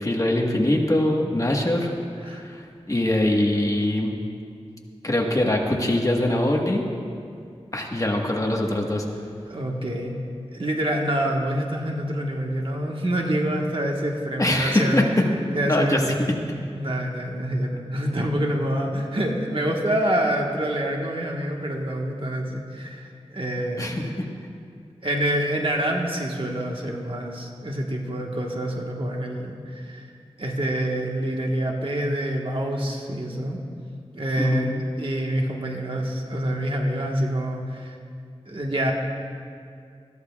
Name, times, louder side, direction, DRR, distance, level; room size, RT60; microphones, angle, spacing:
voice 1, 0.0-1.9 2.3-4.1 5.0-6.8 7.7-9.0 14.4-15.1 15.6-16.0 23.8-24.3 34.4-34.8, left 1 dB, 30° left, 1 dB, 1.4 m, -23 dB
voice 2, 9.5-10.1 10.5-15.1 15.5-16.2 16.7-24.1 25.0-30.0 30.4-33.6 34.1-34.7 35.0-38.0 38.5-38.9, right 1 dB, 55° right, 0 dB, 1.4 m, -26 dB
20.5 x 13.5 x 2.4 m, 2.3 s
wide cardioid pair, 70°, 11 cm